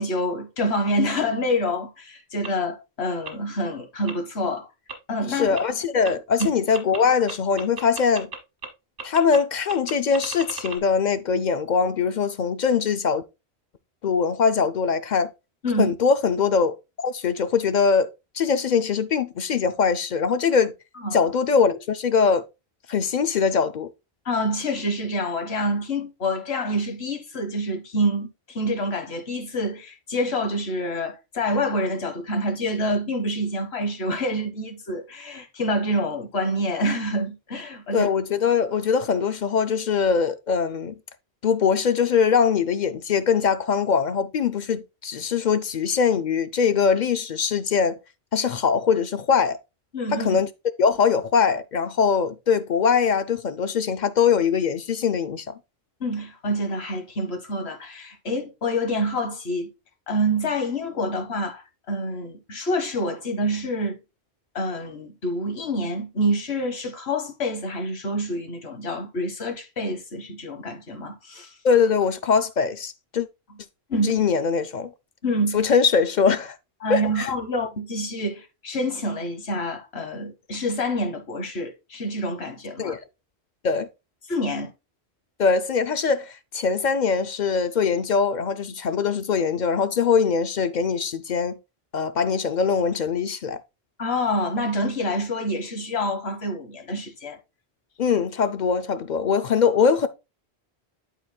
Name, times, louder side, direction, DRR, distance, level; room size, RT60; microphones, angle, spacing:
voice 1, 0.0-4.7 5.1-5.5 15.6-15.9 21.0-21.2 24.2-38.1 49.9-50.4 56.0-59.7 60.1-64.0 64.5-71.5 73.9-74.2 75.2-75.6 76.8-82.9 84.3-84.7 94.0-97.4, equal, 75° left, 1.4 m, -27 dB
sound 1, 2.4-2.5 3.3-3.4 4.1-4.2 4.9-5.0 5.6-5.7 6.0-6.1 6.4-6.5 6.7-7.0 7.3-8.4 8.6-8.7 9.0-9.4 9.7-10.8, right 5 dB, 70° right, 1.6 m, -34 dB
voice 2, 5.3-8.3 9.0-13.2 14.0-15.3 15.8-16.8 17.0-20.7 21.1-22.4 22.9-23.9 37.9-40.9 41.4-48.0 48.3-49.6 50.1-50.5 50.8-55.4 71.6-73.3 74.0-74.9 75.5-76.6 76.9-77.3 82.8-83.0 83.6-83.9 85.4-91.6 91.9-93.6 98.0-100.1, left 6 dB, 55° left, 0.6 m, -22 dB
11.5 x 4.3 x 2.2 m
omnidirectional pair, 1.1 m